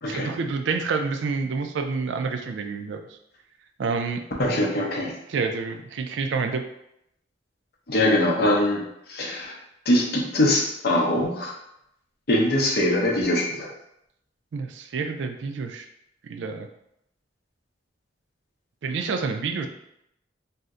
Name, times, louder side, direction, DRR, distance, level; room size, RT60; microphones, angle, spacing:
voice 1, 0.1-3.2 3.8-4.2 5.3-6.6 14.5-15.9 16.2-16.7 18.8-19.7, right 4 dB, 75° right, 6 dB, 0.3 m, -28 dB
voice 2, 4.4-5.1 7.9-8.8 9.1-9.6 9.9-11.5 12.3-13.7, left 1 dB, 55° left, -1 dB, 0.6 m, -22 dB
2.7 x 2.1 x 3.6 m, 0.79 s
head